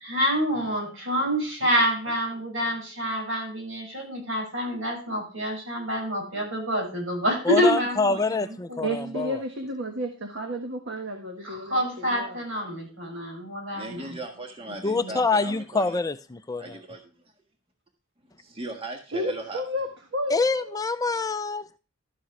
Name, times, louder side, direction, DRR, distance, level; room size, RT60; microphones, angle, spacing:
voice 1, 0.0-9.1 11.4-14.2 14.9-15.2, equal, 80° right, 6.2 m, -27 dB
voice 2, 7.5-9.4 14.8-16.8 20.3-21.8, left 3 dB, 15° left, 0.4 m, -26 dB
voice 3, 8.8-12.4 19.1-20.8, equal, 60° right, 1.5 m, -32 dB
voice 4, 13.7-16.0 16.6-17.0 18.4-19.6, right 1 dB, 30° right, 1.5 m, -38 dB
12.5 x 7.5 x 3.2 m
head